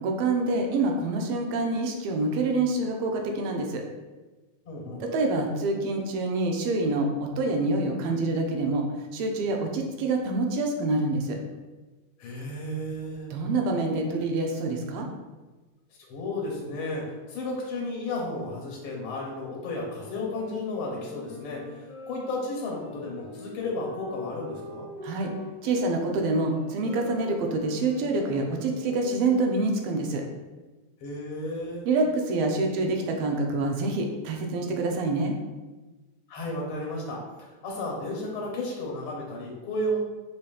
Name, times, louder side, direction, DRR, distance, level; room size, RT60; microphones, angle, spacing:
voice 1, 0.0-3.8 5.0-8.8 9.1-11.4 13.3-15.1 25.0-25.3 25.6-30.2 31.8-35.3, right 2 dB, 80° right, 2 dB, 1.4 m, -26 dB
voice 2, 4.6-5.0 12.2-13.3 16.1-24.9 31.0-31.8 36.3-40.0, left 1 dB, 85° left, -2 dB, 1.7 m, -33 dB
sound 1, 20.0-29.7, left 4 dB, 70° left, 0.8 m, -43 dB
5.0 x 2.8 x 2.3 m, 1.2 s
omnidirectional pair, 2.4 m